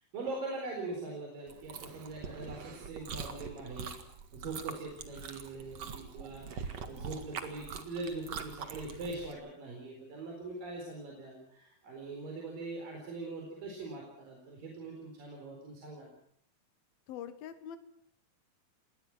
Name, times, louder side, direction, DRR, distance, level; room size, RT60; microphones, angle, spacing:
voice 1, 0.1-4.0 4.3-16.1, right 3 dB, 70° right, 0 dB, 6.0 m, -42 dB
Chewing mastication, 1.5-9.3, right 6 dB, 50° right, 2.7 m, -43 dB
voice 2, 17.1-17.8, left 9 dB, 85° left, 10 dB, 3.2 m, -43 dB
27.5 x 21.0 x 6.2 m, 0.64 s
omnidirectional pair, 4.1 m